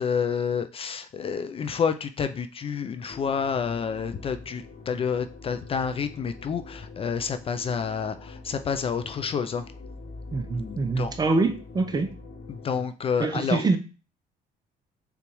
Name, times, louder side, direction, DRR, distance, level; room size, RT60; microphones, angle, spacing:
voice 1, 0.0-9.7 10.6-11.1 12.5-13.6, left 6 dB, 35° left, 0.4 m, -29 dB
sound 1, 3.1-12.9, left 3 dB, 65° left, 0.8 m, -44 dB
voice 2, 10.3-12.1 13.2-13.8, right 3 dB, 25° right, 0.6 m, -25 dB
6.8 x 2.4 x 3.0 m
cardioid pair, 110°, 17 cm